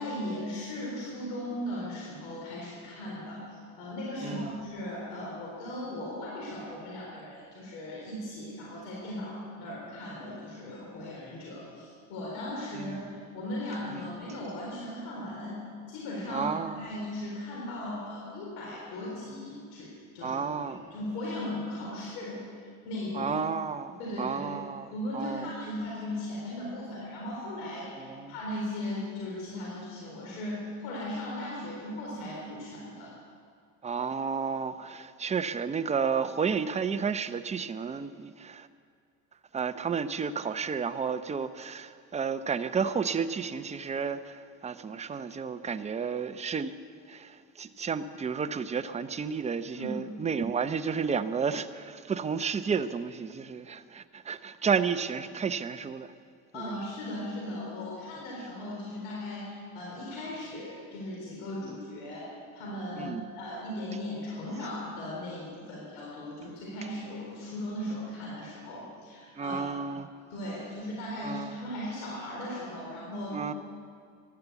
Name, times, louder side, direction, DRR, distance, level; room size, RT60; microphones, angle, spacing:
voice 1, 0.0-15.6 15.9-16.5 16.8-20.4 20.9-22.4 22.8-23.3 24.0-24.5 24.9-33.1 49.7-50.0 56.5-62.3 62.5-69.8 70.3-73.4, left 1 dB, 90° left, -3 dB, 4.1 m, -37 dB
voice 2, 4.2-4.6 12.7-13.1 13.9-14.1 16.3-16.8 20.2-20.9 23.1-25.5 28.0-28.3 33.8-38.7 39.5-46.7 47.1-56.1 56.5-56.8 61.6-61.8 63.0-63.2 69.4-70.1 71.2-71.5 73.3-73.5, right 6 dB, 20° right, 10 dB, 0.7 m, -32 dB
15.5 x 11.0 x 8.1 m, 2.2 s
supercardioid pair, 110°, 34 cm